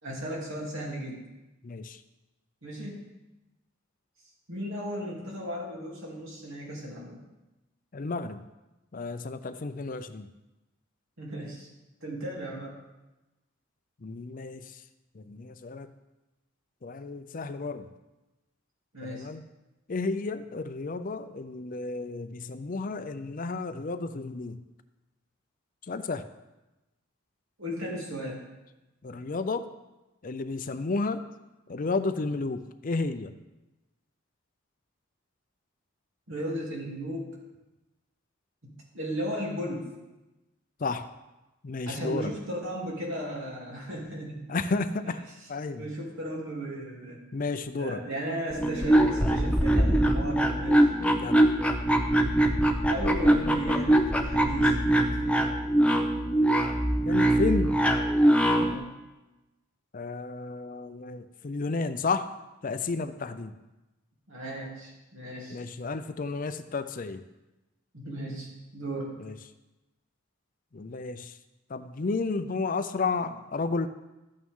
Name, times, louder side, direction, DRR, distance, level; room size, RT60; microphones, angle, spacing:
voice 1, 0.0-1.2 2.6-3.0 4.5-7.2 11.2-11.7 12.0-12.7 18.9-19.3 27.6-28.4 36.3-37.3 38.6-39.9 41.8-44.5 45.8-47.2 47.8-50.9 52.9-55.5 58.6-58.9 64.3-65.6 67.9-69.2, right 1 dB, 80° right, -3 dB, 3.1 m, -35 dB
voice 2, 1.6-2.0 7.9-8.4 8.9-10.3 14.0-14.8 15.1-15.9 16.8-17.9 19.0-19.4 19.9-24.6 25.8-26.2 29.0-29.7 30.2-31.2 31.7-33.3 40.8-41.1 41.6-42.3 44.5-45.2 45.5-45.9 47.3-48.0 51.0-51.5 57.0-57.7 59.9-62.3 62.6-63.5 65.5-67.2 69.2-69.4 70.7-71.4 71.7-73.9, left 3 dB, 40° left, 11 dB, 0.5 m, -32 dB
sound 1, 48.5-58.8, right 1 dB, 5° left, 0.7 m, -23 dB
12.5 x 8.8 x 3.7 m, 1.0 s
head